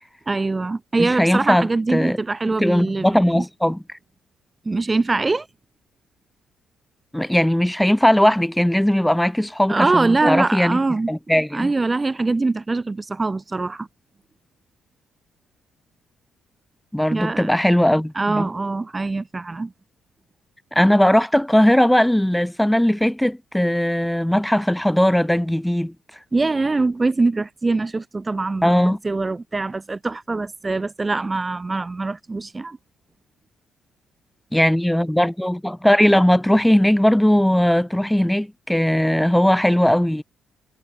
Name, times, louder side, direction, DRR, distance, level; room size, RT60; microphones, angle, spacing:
voice 1, 0.3-3.4 4.6-5.5 9.7-11.1 11.5-13.9 17.1-17.5 18.1-19.7 26.3-32.8, right 3 dB, 20° right, 3.3 m, -23 dB
voice 2, 1.0-2.2 2.6-4.0 7.1-10.8 11.1-11.7 16.9-18.5 20.7-25.9 28.6-29.0 34.5-40.2, left 1 dB, 5° left, 3.4 m, -18 dB
cardioid pair, 90°, 0 cm